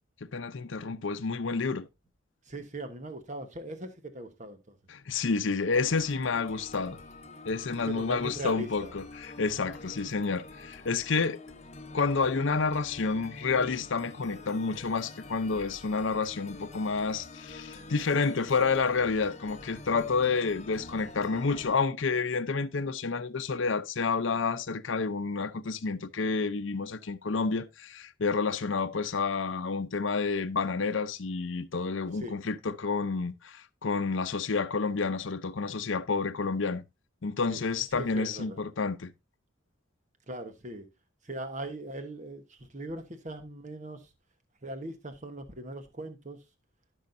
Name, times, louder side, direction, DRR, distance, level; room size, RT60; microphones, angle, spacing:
voice 1, 0.2-1.9 4.9-7.0 7.5-11.4 11.9-36.8 37.2-39.1, left 4 dB, 70° left, 0.6 m, -29 dB
voice 2, 2.5-4.6 7.8-8.9 32.1-32.4 37.5-37.6 37.9-38.6 40.3-40.9 41.2-44.1 44.6-46.4, right 1 dB, 35° right, 1.2 m, -40 dB
sound 1, 5.7-21.7, left 2 dB, 35° left, 1.0 m, -46 dB
14.5 x 6.3 x 2.6 m
head